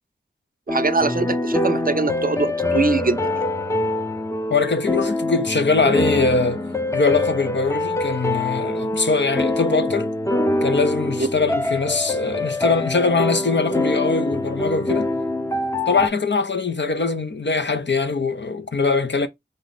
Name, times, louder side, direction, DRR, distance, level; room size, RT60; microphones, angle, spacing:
sound 1, 0.7-16.1, left 2 dB, 15° left, 0.7 m, -24 dB
voice 1, 0.7-3.3 11.2-11.3, right 3 dB, 50° right, 0.5 m, -22 dB
voice 2, 4.5-6.6 6.9-10.1 10.6-15.1 15.9-19.3, left 4 dB, 70° left, 0.7 m, -22 dB
3.9 x 3.0 x 4.1 m
wide cardioid pair, 45°, 20 cm